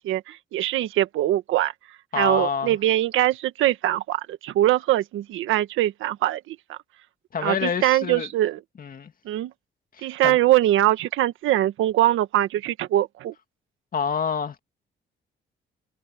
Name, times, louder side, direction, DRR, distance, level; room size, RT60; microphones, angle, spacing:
voice 1, 0.0-1.7 2.1-6.8 7.4-8.6 9.2-9.5 10.0-13.3, right 14 dB, 90° right, 1.5 m, -22 dB
voice 2, 2.1-2.8 7.3-8.3 8.8-9.1 9.9-10.4 13.9-14.6, left 6 dB, 45° left, 2.3 m, -27 dB
cardioid pair, 90°, 20 cm